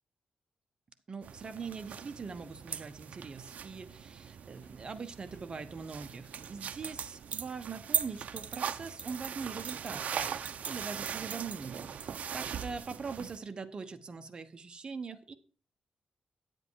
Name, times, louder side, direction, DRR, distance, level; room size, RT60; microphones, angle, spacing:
voice 1, 1.1-15.3, right 5 dB, 35° right, 8 dB, 1.1 m, -42 dB
sound 1, 1.2-13.4, right 8 dB, 65° right, 0.7 m, -39 dB
sound 2, 2.2-8.8, left 2 dB, 35° left, 5.8 m, -70 dB
9.8 x 8.0 x 4.7 m, 0.40 s
wide cardioid pair, 150°, 3 cm